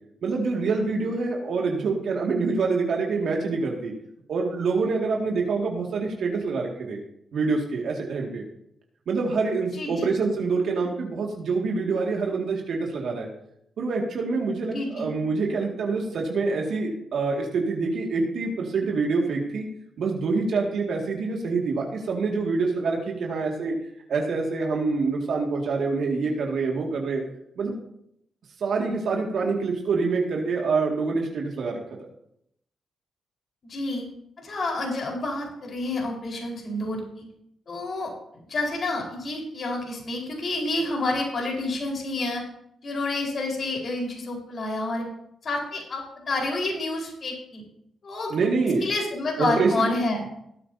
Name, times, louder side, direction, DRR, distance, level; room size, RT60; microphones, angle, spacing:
voice 1, 0.2-3.9 4.3-7.0 7.3-8.4 9.1-13.3 13.8-19.6 20.0-23.7 24.1-27.2 27.6-27.7 28.6-31.8 48.3-48.8 49.4-49.9, right 4 dB, 70° right, 0 dB, 2.0 m, -26 dB
voice 2, 9.7-10.1 14.7-15.1 33.7-34.0 34.4-37.2 37.7-38.1 38.5-42.4 42.8-45.0 45.4-47.6 48.0-48.3 48.8-50.2, left 2 dB, 55° left, 0 dB, 4.4 m, -29 dB
18.5 x 8.6 x 2.8 m, 0.74 s
supercardioid pair, 50°, 0 cm